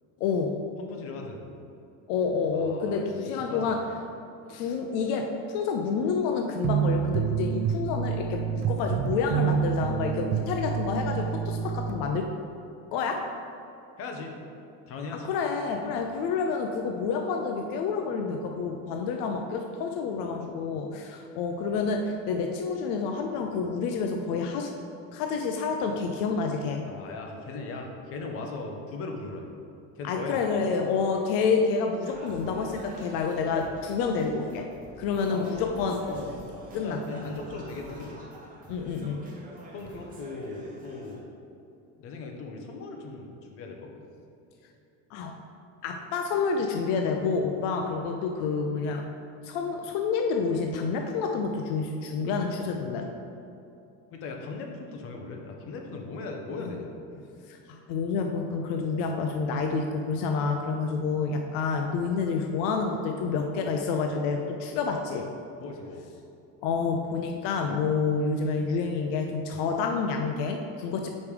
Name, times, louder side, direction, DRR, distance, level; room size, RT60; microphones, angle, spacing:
voice 1, 0.2-0.5 2.1-3.8 4.5-12.3 12.9-13.2 15.2-24.7 25.1-26.8 30.0-34.7 35.0-36.0 36.7-37.2 38.7-39.2 45.1-45.3 45.8-49.0 49.4-53.1 56.6-56.7 57.5-65.3 66.6-71.1, left 5 dB, 70° left, 3 dB, 0.6 m, -28 dB
voice 2, 0.8-1.4 2.5-3.1 3.5-4.0 14.0-14.4 14.9-15.3 15.8-15.9 26.9-29.5 30.0-30.5 35.3-36.4 36.7-38.3 39.7-41.3 42.0-44.1 47.8-47.9 54.1-56.9 65.6-66.0, left 3 dB, 40° left, 2 dB, 0.8 m, -38 dB
sound 1, 6.6-12.0, right 8 dB, 70° right, 0.6 m, -28 dB
Singing, 32.0-41.2, right 1 dB, 25° right, 0.9 m, -48 dB
5.2 x 4.7 x 5.1 m, 2.7 s
cardioid pair, 165°, 35 cm